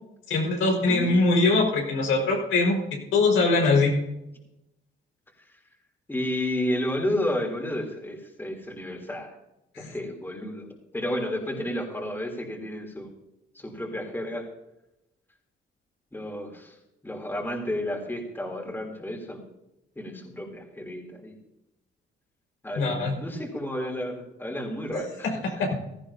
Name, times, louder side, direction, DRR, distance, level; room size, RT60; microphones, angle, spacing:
voice 1, 0.3-2.8 3.1-4.0 9.8-9.9 22.8-23.1 24.9-25.0 25.4-25.8, left 3 dB, 85° left, 0 dB, 5.5 m, -22 dB
voice 2, 0.9-1.4 6.1-9.4 9.8-10.7 10.9-13.2 13.6-14.5 16.1-16.7 17.0-19.4 20.0-21.3 22.6-25.3 25.6-25.7, left 1 dB, 10° left, 1 dB, 3.5 m, -31 dB
17.0 x 14.0 x 2.9 m, 0.88 s
cardioid pair, 90°, 20 cm